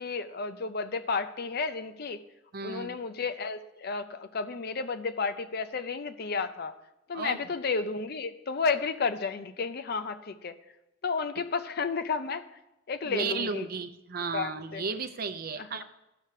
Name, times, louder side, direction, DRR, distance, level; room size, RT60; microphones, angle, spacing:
voice 1, 0.0-2.2 2.6-6.8 7.1-10.6 11.0-12.4 12.9-13.7 14.3-14.8 15.6-15.8, left 4 dB, 50° left, 11 dB, 0.5 m, -32 dB
voice 2, 2.5-3.0 7.1-7.4 13.0-15.8, right 5 dB, 45° right, 9 dB, 0.6 m, -34 dB
13.0 x 4.9 x 5.7 m, 0.93 s
head